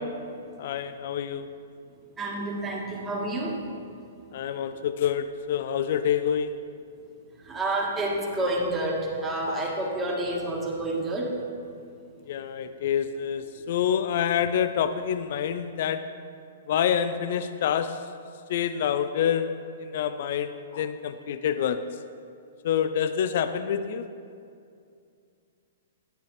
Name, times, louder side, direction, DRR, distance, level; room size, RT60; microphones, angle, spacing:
voice 1, 0.6-1.5 4.3-6.6 12.3-16.1 16.7-18.1 18.5-21.9 22.6-24.1, left 8 dB, 55° left, 11 dB, 0.4 m, -27 dB
voice 2, 2.2-3.6 7.4-11.3, right 1 dB, 15° right, -2 dB, 1.5 m, -29 dB
11.0 x 8.9 x 3.2 m, 2.4 s
figure-of-eight pair, 115°, 0 cm